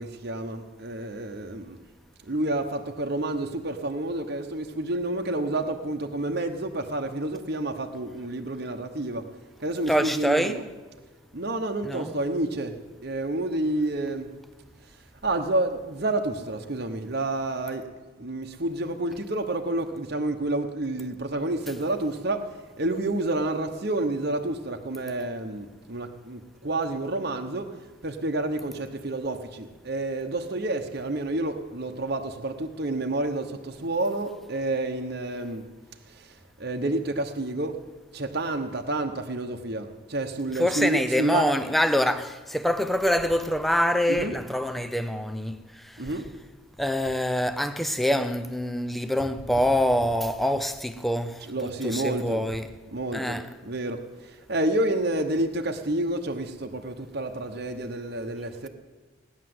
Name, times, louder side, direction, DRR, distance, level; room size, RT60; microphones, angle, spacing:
voice 1, 0.0-1.8 2.2-10.7 11.3-14.4 14.8-17.9 18.2-35.6 36.1-41.5 44.1-44.4 46.0-46.3 49.5-49.6 51.4-52.5 52.9-58.7, right 2 dB, 50° right, 1.1 m, -29 dB
voice 2, 9.9-10.6 11.8-12.1 40.6-46.1 46.8-52.7 53.1-53.5, equal, ahead, 0.6 m, -25 dB
17.5 x 10.5 x 7.8 m
head